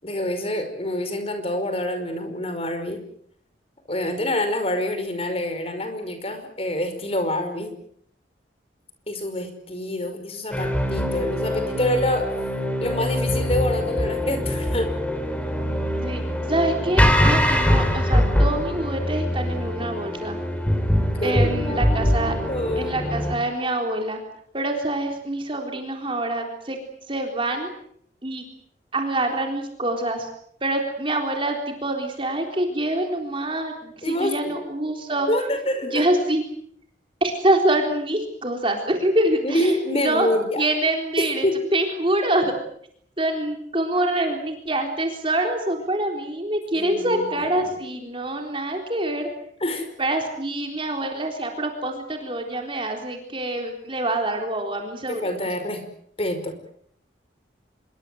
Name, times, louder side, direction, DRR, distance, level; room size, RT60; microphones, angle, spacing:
voice 1, 0.0-3.0 3.9-7.7 9.1-12.3 12.8-14.9 21.2-23.1 34.0-34.6 35.3-36.0 39.4-40.6 41.2-41.6 46.7-47.8 49.6-49.9 55.1-55.8 56.2-56.6, left 1 dB, 35° left, 8 dB, 5.3 m, -26 dB
sound 1, 10.5-23.3, equal, 5° left, 3.6 m, -23 dB
voice 2, 16.5-20.4 21.2-22.4 22.8-24.2 24.5-26.8 27.1-27.7 28.2-28.5 28.9-30.3 30.6-35.3 35.8-36.4 37.2-40.3 40.6-41.4 41.7-42.5 43.2-49.3 50.0-55.5, right 1 dB, 30° right, 3 dB, 3.8 m, -25 dB
26.5 x 23.0 x 7.8 m, 0.67 s
head